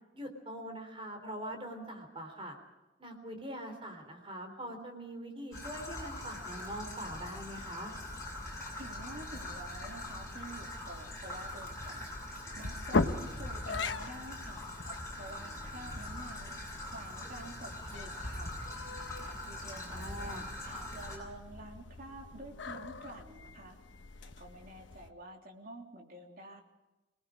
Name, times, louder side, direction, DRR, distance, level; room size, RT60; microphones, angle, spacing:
voice 1, 0.1-2.6 3.0-7.9 19.7-20.4, right 1 dB, 30° right, 4 dB, 3.7 m, -43 dB
Traffic noise roadway noise / Trickle dribble, 5.5-21.2, left 1 dB, 15° left, 6.8 m, -43 dB
sound 1, 5.9-25.1, left 3 dB, 85° left, 1.1 m, -42 dB
voice 2, 8.8-12.0 12.3-14.7 15.1-18.6 19.2-23.8 24.2-26.6, right 1 dB, 50° right, 1 dB, 3.2 m, -49 dB
26.5 x 19.5 x 5.0 m, 1.1 s
head